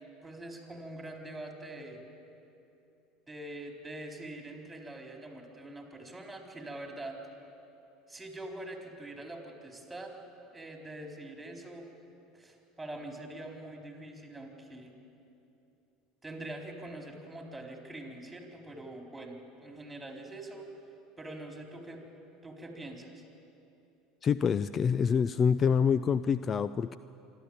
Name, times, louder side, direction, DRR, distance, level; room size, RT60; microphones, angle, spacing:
voice 1, 0.0-2.0 3.3-7.2 8.1-10.1 10.5-11.9 12.3-14.9 16.2-20.7 21.2-22.0 22.4-23.2, right 1 dB, 10° right, 2 dB, 4.0 m, -44 dB
voice 2, 24.2-27.0, left 6 dB, 35° left, 15 dB, 0.4 m, -26 dB
26.0 x 12.0 x 8.8 m, 2.8 s
hypercardioid pair, 75°, 0 cm